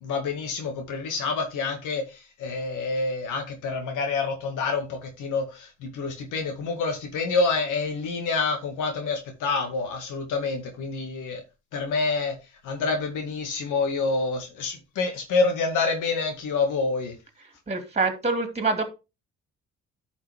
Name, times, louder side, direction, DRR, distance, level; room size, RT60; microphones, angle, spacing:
voice 1, 0.0-11.4 11.7-12.3 12.6-17.2, left 4 dB, 85° left, 2.2 m, -27 dB
voice 2, 17.7-18.8, right 3 dB, 20° right, 2.6 m, -25 dB
11.0 x 5.6 x 3.6 m
cardioid pair, 90°, 30 cm